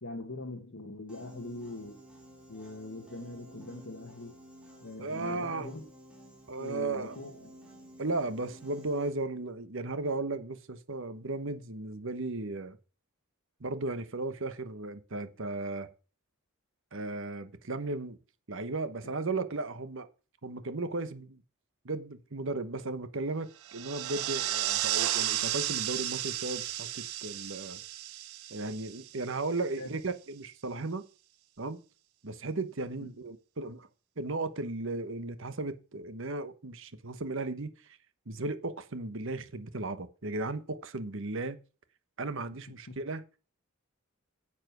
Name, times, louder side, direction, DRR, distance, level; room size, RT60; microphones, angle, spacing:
voice 1, 0.0-2.0 2.5-4.4 4.8-5.8 6.6-7.5 29.8-30.0 33.0-33.1 42.9-43.0, left 2 dB, 70° left, 1.6 m, -42 dB
Piano, 1.1-9.1, right 1 dB, 5° right, 3.1 m, -53 dB
voice 2, 5.0-5.7 6.5-7.1 8.0-12.8 13.6-15.9 16.9-18.2 18.5-20.1 20.4-21.4 21.8-27.8 28.5-31.0 31.6-31.8 32.2-33.9 34.2-38.0 38.3-41.6 42.2-43.2, right 2 dB, 60° right, 1.1 m, -35 dB
sound 1, 23.6-29.4, right 13 dB, 85° right, 0.7 m, -33 dB
9.4 x 7.5 x 6.1 m
head